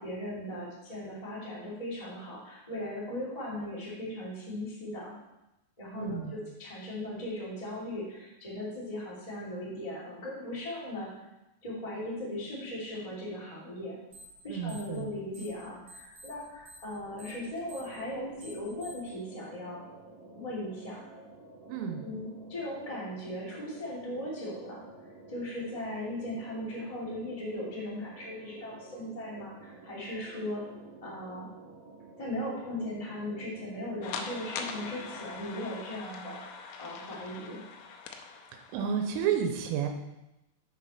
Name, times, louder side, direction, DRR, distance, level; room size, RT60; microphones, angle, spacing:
voice 1, 0.0-5.1 5.8-11.1 11.6-14.0 14.4-19.8 20.3-21.0 22.0-24.8 25.3-30.6 31.0-31.5 32.2-37.6, left 1 dB, 50° left, -7 dB, 0.4 m, -38 dB
voice 2, 6.0-6.3 14.5-15.1 21.7-22.1 38.5-39.9, right 8 dB, 90° right, 4 dB, 3.4 m, -31 dB
sound 1, 14.1-14.4 14.6-15.6 15.9-19.1, right 2 dB, 25° right, 2.1 m, -51 dB
sound 2, 17.0-35.4, right 3 dB, 50° right, 2.8 m, -51 dB
sound 3, 34.0-39.3, left 6 dB, 85° left, 3.2 m, -42 dB
8.0 x 7.4 x 4.2 m, 0.92 s
omnidirectional pair, 5.8 m